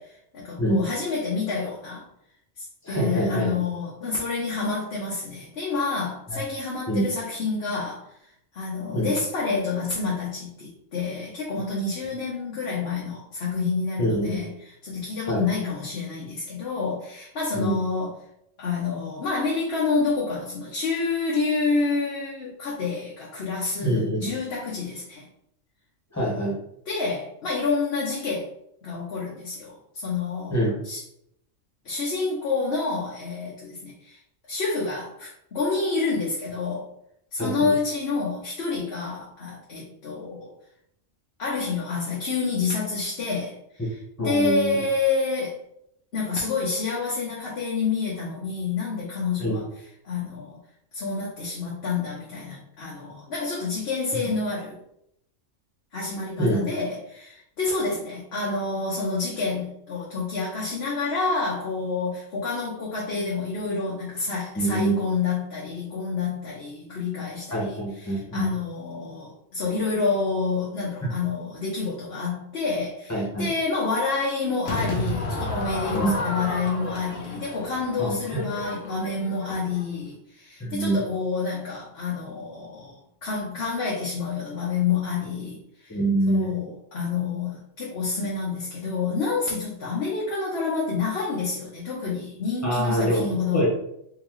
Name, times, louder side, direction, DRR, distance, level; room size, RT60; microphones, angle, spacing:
voice 1, 0.0-2.0 2.6-8.1 8.5-14.5 14.8-18.1 18.6-25.3 26.9-28.5 28.8-31.0 31.8-34.2 34.5-36.9 37.3-40.5 41.4-45.6 46.1-49.7 50.0-50.6 50.9-54.8 55.9-86.0 86.3-93.7, left 4 dB, 60° left, -5 dB, 1.0 m, -28 dB
voice 2, 2.8-3.6 6.3-6.4 6.9-7.0 8.9-9.1 14.0-14.4 15.3-15.4 17.5-17.7 23.8-24.3 26.1-26.6 30.5-30.7 37.4-37.7 44.2-44.8 49.4-49.6 56.4-56.6 64.5-65.0 67.5-68.5 73.1-73.5 75.9-76.1 78.0-78.2 80.6-81.0 85.9-86.5 92.6-93.7, right 1 dB, 15° left, -4 dB, 1.2 m, -25 dB
Crowd / Fireworks, 74.7-79.9, left 2 dB, 80° left, 1.1 m, -31 dB
3.7 x 2.8 x 3.0 m, 0.74 s
omnidirectional pair, 1.3 m